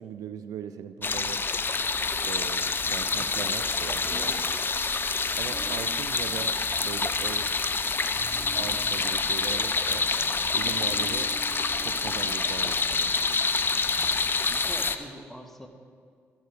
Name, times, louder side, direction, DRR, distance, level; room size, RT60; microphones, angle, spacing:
voice 1, 0.0-1.4 2.3-4.4 5.4-7.5 8.0-8.1 8.6-10.1 10.5-11.3 11.8-13.2, right 9 dB, 75° right, 11 dB, 0.5 m, -39 dB
sound 1, 1.0-15.0, left 4 dB, 35° left, 0.7 m, -27 dB
sound 2, 4.0-4.9 5.5-7.1 8.1-12.4 12.6-12.7, right 2 dB, 15° right, 1.0 m, -46 dB
voice 2, 14.3-15.7, equal, 5° left, 4 dB, 1.6 m, -44 dB
13.5 x 7.9 x 5.1 m, 2.1 s
supercardioid pair, 50°, 6 cm